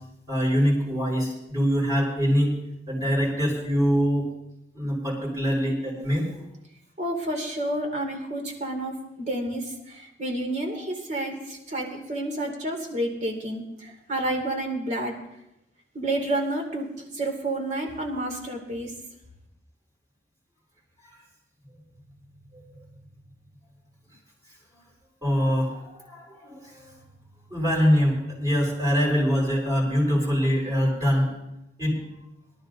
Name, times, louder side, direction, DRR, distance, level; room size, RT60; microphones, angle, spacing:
voice 1, 0.3-2.5 2.9-4.2 4.7-6.3 10.7-10.8 22.5-22.6 25.2-26.9 27.5-31.3 31.8-32.0, equal, 20° right, -7 dB, 4.7 m, -24 dB
voice 2, 7.0-15.1 15.9-18.9, right 1 dB, 45° right, 2 dB, 2.5 m, -30 dB
23.5 x 12.0 x 2.7 m, 0.86 s
head